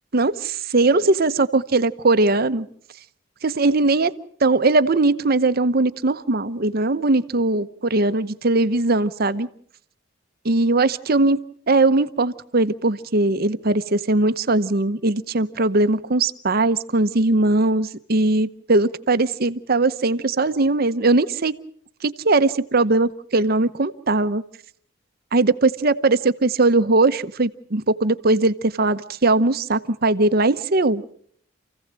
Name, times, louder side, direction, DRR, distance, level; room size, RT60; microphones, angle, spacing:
voice 1, 0.1-2.7 3.4-4.1 4.4-9.5 10.4-11.4 11.7-21.5 22.0-24.4 25.3-31.0, right 2 dB, 55° right, 13 dB, 0.9 m, -20 dB
28.5 x 16.0 x 7.5 m, 0.63 s
head